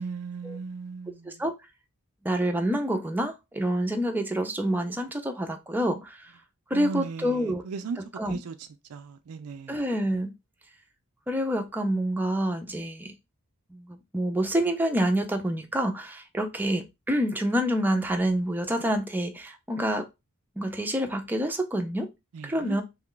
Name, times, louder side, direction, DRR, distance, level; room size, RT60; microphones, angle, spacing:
voice 1, 0.0-1.4 6.7-8.0 8.3-9.8 22.3-22.8, right 5 dB, 85° right, 0.4 m, -37 dB
voice 2, 2.2-6.2 6.7-7.6 8.2-8.4 9.7-10.3 11.3-13.1 13.7-20.1 20.6-22.1 22.4-22.8, right 1 dB, 10° right, 0.5 m, -27 dB
3.1 x 2.4 x 3.7 m
head